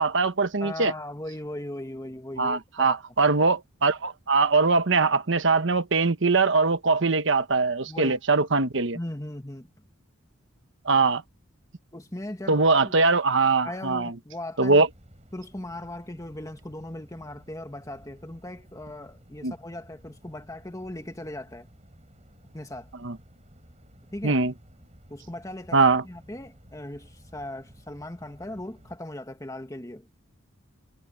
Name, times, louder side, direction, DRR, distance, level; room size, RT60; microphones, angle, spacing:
voice 1, 0.0-0.9 2.4-9.0 10.8-11.2 12.5-14.1 14.6-14.9 19.4-19.5 23.0-23.2 24.2-24.5 25.7-26.0, right 4 dB, 65° right, 1.1 m, -22 dB
voice 2, 0.6-3.0 7.9-8.2 8.9-9.7 11.9-13.0 13.6-14.8 15.3-21.7 22.5-22.9 24.1-24.4 25.1-25.8 26.0-30.1, left 1 dB, 15° left, 1.9 m, -38 dB
sound 1, 14.8-29.0, equal, 35° right, 7.1 m, -54 dB
head